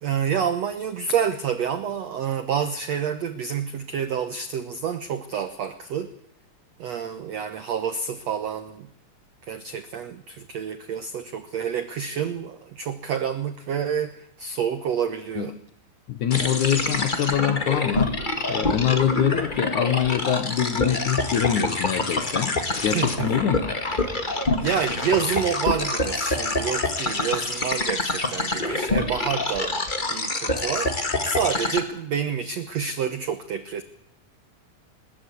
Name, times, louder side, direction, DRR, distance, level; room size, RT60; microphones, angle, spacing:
voice 1, 0.0-6.1 6.8-8.9 9.4-15.5 22.9-23.6 24.6-29.8 30.1-33.8, right 7 dB, 75° right, 10 dB, 1.5 m, -28 dB
voice 2, 16.1-18.1 18.5-23.7, left 9 dB, 65° left, 10 dB, 2.3 m, -24 dB
sound 1, 16.3-31.8, left 2 dB, 45° left, 0.6 m, -26 dB
21.0 x 21.0 x 8.5 m, 0.71 s
omnidirectional pair, 4.6 m